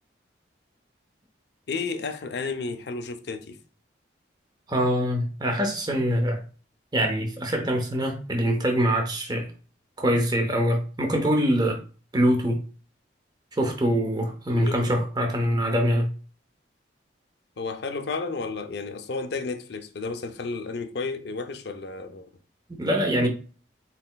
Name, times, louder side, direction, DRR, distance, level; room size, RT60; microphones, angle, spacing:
voice 1, 1.7-3.6 14.5-15.0 17.6-22.3 23.2-23.3, left 4 dB, 60° left, 0.5 m, -32 dB
voice 2, 4.7-6.4 6.9-9.5 10.0-11.8 12.1-12.6 13.6-16.1 22.7-23.3, equal, 20° right, 0.8 m, -24 dB
4.2 x 4.0 x 2.2 m
head